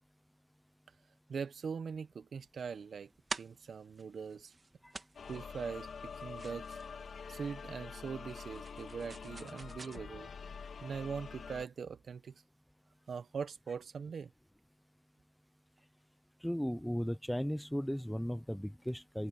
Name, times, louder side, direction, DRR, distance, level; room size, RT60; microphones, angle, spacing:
voice 1, 1.3-3.1 3.4-4.5 5.3-6.8 7.3-10.3 10.8-12.4 13.1-14.3, right 6 dB, 75° right, 1.2 m, -42 dB
sound 1, 2.6-10.0, right 3 dB, 45° right, 3.5 m, -49 dB
sound 2, 5.1-11.6, left 5 dB, 75° left, 2.5 m, -46 dB
voice 2, 16.4-19.3, equal, 5° left, 0.9 m, -36 dB
cardioid pair, 60°, 0 cm